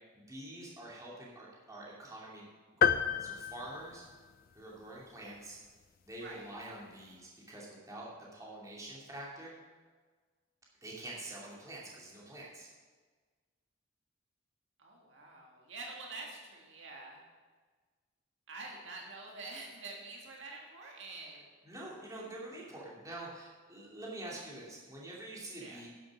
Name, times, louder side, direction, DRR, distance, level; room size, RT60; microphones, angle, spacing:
voice 1, 0.1-2.5 2.8-4.1 4.5-5.6 6.0-9.5 10.8-12.7 21.6-25.9, right 1 dB, 15° right, -4 dB, 2.6 m, -46 dB
sound 1, 2.8-4.6, left 7 dB, 45° left, 0.4 m, -31 dB
voice 2, 14.8-17.2 18.5-21.5 25.6-25.8, right 3 dB, 70° right, -1 dB, 2.0 m, -46 dB
11.0 x 7.6 x 6.5 m, 1.4 s
head